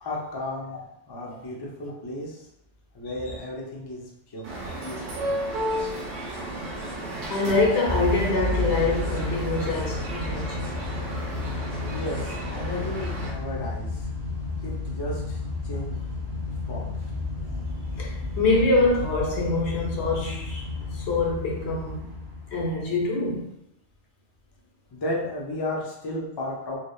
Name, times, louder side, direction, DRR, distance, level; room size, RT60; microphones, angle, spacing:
voice 1, 0.0-2.5 2.9-4.6 4.8-5.3 11.9-14.1 14.6-16.0 16.7-16.9 24.9-26.8, left 1 dB, 40° left, 0.3 m, -34 dB
sound 1, 4.4-13.3, right 1 dB, 90° right, 1.0 m, -33 dB
voice 2, 7.3-10.7 18.0-20.7 20.9-22.1 22.5-23.5, left 2 dB, 70° left, 0.9 m, -25 dB
Motor vehicle (road) / Engine starting / Accelerating revving vroom, 7.9-22.8, left 3 dB, 30° right, 0.5 m, -32 dB
3.3 x 2.0 x 2.2 m
omnidirectional pair, 1.2 m